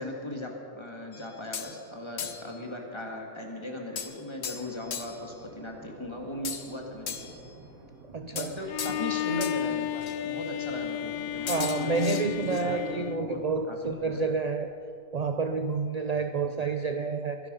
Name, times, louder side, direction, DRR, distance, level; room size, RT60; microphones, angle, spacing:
voice 1, 0.0-7.3 8.3-13.4 13.7-14.2, left 1 dB, 20° left, 1 dB, 2.1 m, -38 dB
sound 1, 1.1-1.8 2.2-2.6 4.0-5.3 6.4-7.5 8.4-9.1 9.4-9.6 10.0-10.2 11.5-12.6, left 7 dB, 50° left, 1.1 m, -37 dB
sound 2, 4.4-14.4, right 3 dB, 75° right, 2.1 m, -51 dB
voice 2, 8.1-8.5 8.9-9.0 11.4-14.7 15.1-17.4, right 4 dB, 50° right, 6 dB, 0.4 m, -29 dB
Bowed string instrument, 8.7-13.7, left 10 dB, 85° left, 1.1 m, -33 dB
22.5 x 11.0 x 5.5 m, 2.5 s
omnidirectional pair, 1.5 m